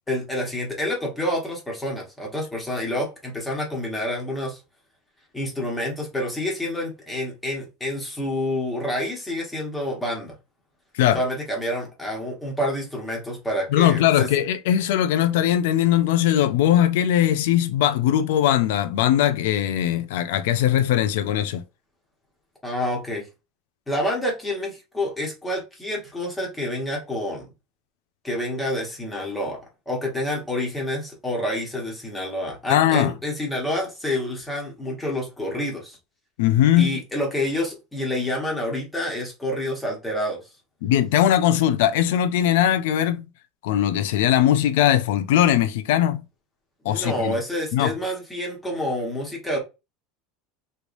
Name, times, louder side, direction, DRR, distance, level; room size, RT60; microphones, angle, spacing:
voice 1, 0.1-4.6 5.3-10.3 11.1-14.3 22.6-23.3 23.9-27.5 28.2-29.6 29.9-36.0 36.8-40.4 46.8-49.6, left 1 dB, 10° left, 1.2 m, -28 dB
voice 2, 13.7-21.6 32.7-33.1 36.4-36.9 40.8-43.2 43.6-46.2 46.8-47.3 47.7-47.9, left 11 dB, 80° left, 0.4 m, -20 dB
3.2 x 3.1 x 2.5 m
supercardioid pair, 155°, 0 cm